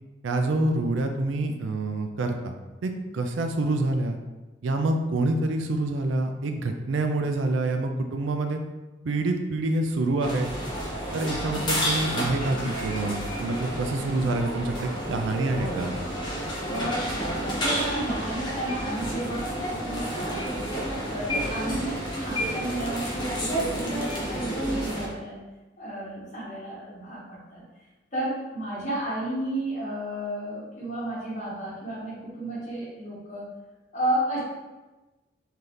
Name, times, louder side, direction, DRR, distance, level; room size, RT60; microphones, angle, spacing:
voice 1, 0.2-2.5 2.8-4.2 4.6-8.6 9.0-10.5 11.1-15.9, right 2 dB, 85° right, 5 dB, 0.4 m, -27 dB
sound 1, 10.2-25.1, equal, 25° left, 0.7 m, -30 dB
voice 2, 16.6-20.7 21.1-25.4 25.8-27.6 28.1-33.5 33.9-34.4, right 1 dB, 40° left, -8 dB, 1.5 m, -32 dB
3.8 x 2.8 x 3.2 m, 1.1 s
head